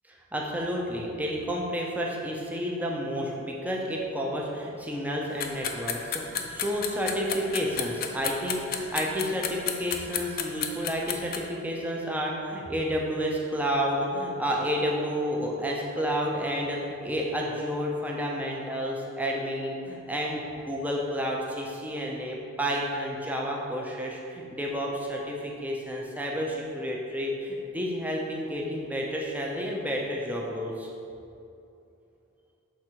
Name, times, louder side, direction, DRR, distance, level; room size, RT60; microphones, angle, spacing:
voice 1, 0.3-30.9, equal, 10° right, -2 dB, 0.6 m, -30 dB
sound 1, 5.4-11.4, left 8 dB, 45° left, 0.4 m, -31 dB
6.3 x 3.5 x 4.5 m, 2.6 s
head